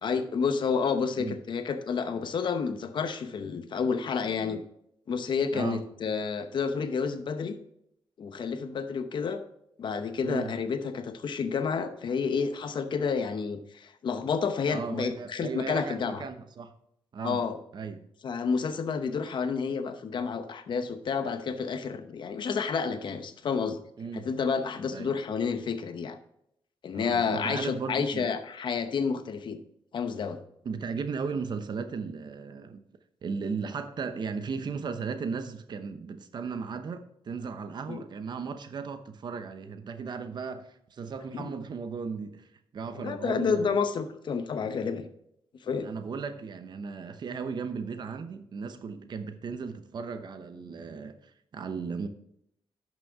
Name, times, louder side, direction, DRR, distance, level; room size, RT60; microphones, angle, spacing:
voice 1, 0.0-4.6 5.1-7.5 8.2-9.4 9.8-16.2 17.2-17.6 18.2-23.8 24.1-26.2 26.8-29.6 29.9-30.4 37.9-38.0 41.3-41.5 42.9-45.1 45.6-45.9, left 5 dB, 50° left, 0.8 m, -30 dB
voice 2, 10.2-10.5 14.7-16.7 17.1-17.4 17.7-18.0 24.0-24.2 24.9-25.1 26.9-28.3 30.6-32.8 33.2-42.4 42.7-43.8 45.8-52.1, right 5 dB, 45° right, 0.8 m, -36 dB
11.0 x 6.1 x 3.6 m
wide cardioid pair, 160°, 10 cm